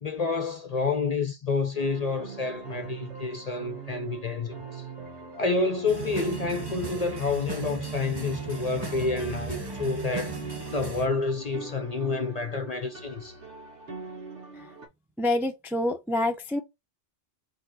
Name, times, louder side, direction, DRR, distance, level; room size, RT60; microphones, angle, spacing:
voice 1, 0.0-4.9 5.4-10.4 10.7-13.4, left 4 dB, 45° left, 0.6 m, -29 dB
sound 1, 1.8-14.9, right 4 dB, 70° right, 1.8 m, -42 dB
sound 2, 5.9-11.1, right 4 dB, 20° right, 0.9 m, -36 dB
voice 2, 15.2-16.6, left 1 dB, 5° right, 0.4 m, -27 dB
4.3 x 2.9 x 4.2 m
omnidirectional pair, 1.2 m